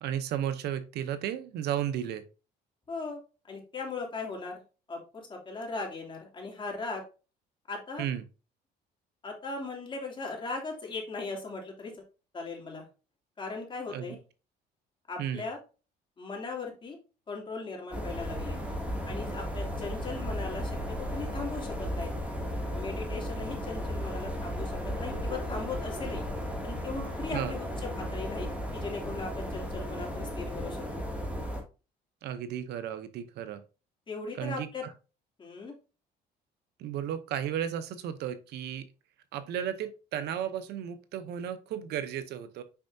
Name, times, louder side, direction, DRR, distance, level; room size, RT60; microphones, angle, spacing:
voice 1, 0.0-2.2 8.0-8.2 13.9-14.2 15.2-15.4 27.3-27.5 32.2-33.6 34.4-34.9 36.8-38.9 39.3-42.6, right 10 dB, 75° right, 12 dB, 0.8 m, -34 dB
voice 2, 2.9-3.2 3.5-4.5 4.9-7.0 7.7-8.0 9.2-12.0 12.3-12.8 13.4-14.2 15.1-15.6 16.2-17.0 17.3-18.6 19.0-22.1 22.7-26.2 26.6-28.5 28.7-31.0 34.1-34.8 35.4-35.7, left 3 dB, 30° left, 0 dB, 2.9 m, -38 dB
sound 1, 17.9-31.6, equal, 5° right, 2.3 m, -35 dB
7.1 x 5.4 x 2.7 m, 0.32 s
cardioid pair, 110°, 17 cm